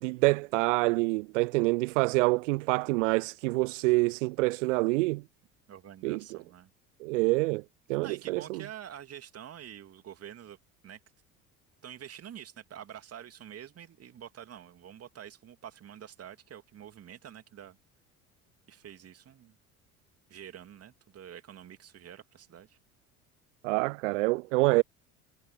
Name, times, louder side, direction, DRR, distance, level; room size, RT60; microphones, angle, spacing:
voice 1, 0.0-5.2 6.0-6.4 7.0-7.6 7.9-8.6 23.6-24.8, right 24 dB, 60° right, 0.7 m, -26 dB
voice 2, 5.7-6.7 8.0-10.6 10.8-11.0 11.8-17.8 18.7-19.6 20.3-22.8, right 10 dB, 35° right, 2.7 m, -47 dB
figure-of-eight pair, 65°, 43 cm